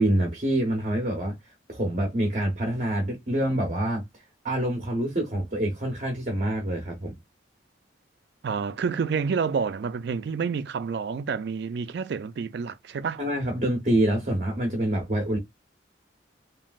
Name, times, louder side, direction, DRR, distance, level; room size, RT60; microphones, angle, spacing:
voice 1, 0.0-1.3 1.7-4.0 4.4-7.2 13.2-15.4, right 1 dB, 40° right, 0.9 m, -26 dB
voice 2, 8.4-13.2, right 5 dB, 60° right, 0.3 m, -29 dB
3.1 x 2.5 x 2.3 m
head